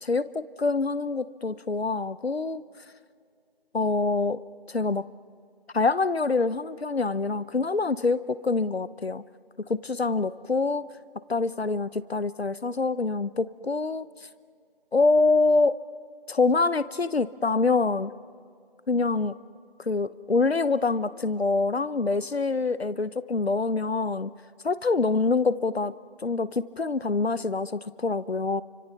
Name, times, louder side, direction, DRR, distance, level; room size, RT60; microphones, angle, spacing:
voice 1, 0.0-2.6 3.7-4.4 4.7-5.1 5.7-9.2 9.7-10.8 11.3-14.1 14.9-15.8 16.3-18.1 18.9-19.3 19.9-24.3 24.6-25.9 26.2-28.6, left 3 dB, 80° left, 16 dB, 0.9 m, -25 dB
29.5 x 25.0 x 5.8 m, 2.2 s
figure-of-eight pair, 170°, 31 cm